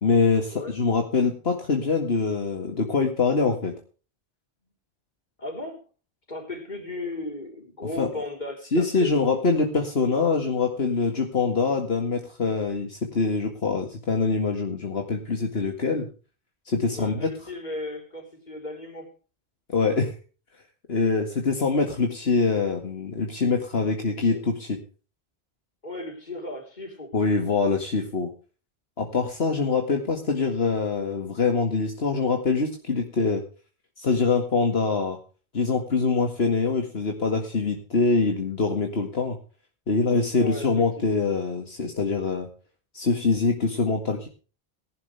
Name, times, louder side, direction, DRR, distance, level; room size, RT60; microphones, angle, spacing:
voice 1, 0.0-3.7 8.0-8.1 8.7-16.1 16.7-17.3 19.7-20.1 20.9-24.8 27.1-28.3 29.0-33.4 34.0-35.2 35.5-39.4 39.9-42.5 42.9-44.3, left 4 dB, 70° left, 3 dB, 2.2 m, -24 dB
voice 2, 5.4-5.8 6.3-9.4 16.9-19.1 24.2-24.4 25.8-27.1 40.4-40.7 41.0-41.2, left 2 dB, 45° left, 2 dB, 4.4 m, -36 dB
19.0 x 11.0 x 3.4 m, 0.36 s
omnidirectional pair, 1.1 m